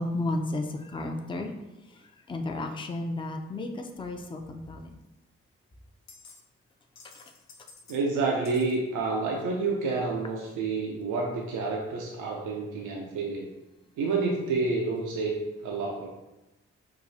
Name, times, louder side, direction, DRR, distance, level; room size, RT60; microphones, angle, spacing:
voice 1, 0.0-1.5 1.9-4.9 7.1-7.2, left 2 dB, 15° left, 4 dB, 0.4 m, -33 dB
sound 1, 5.0-5.1 6.1-6.4 6.7-8.0 8.4-8.8, left 4 dB, 65° left, 0.6 m, -51 dB
voice 2, 7.9-13.5 14.0-16.1, right 3 dB, 90° right, -1 dB, 0.5 m, -29 dB
4.6 x 2.3 x 2.7 m, 1.0 s
supercardioid pair, 40°, 30 cm